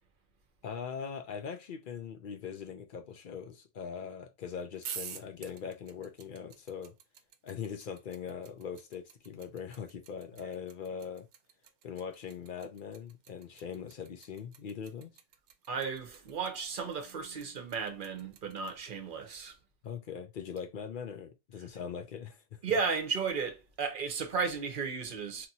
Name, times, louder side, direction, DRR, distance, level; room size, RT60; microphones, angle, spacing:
voice 1, 0.6-6.9 7.4-11.3 11.8-15.1 19.8-22.6, left 7 dB, 60° left, 0.6 m, -41 dB
sound 1, 4.8-18.9, right 8 dB, 85° right, 0.9 m, -48 dB
voice 2, 15.7-19.5 22.6-25.5, right 5 dB, 50° right, 0.8 m, -34 dB
2.9 x 2.6 x 2.6 m
omnidirectional pair, 1.2 m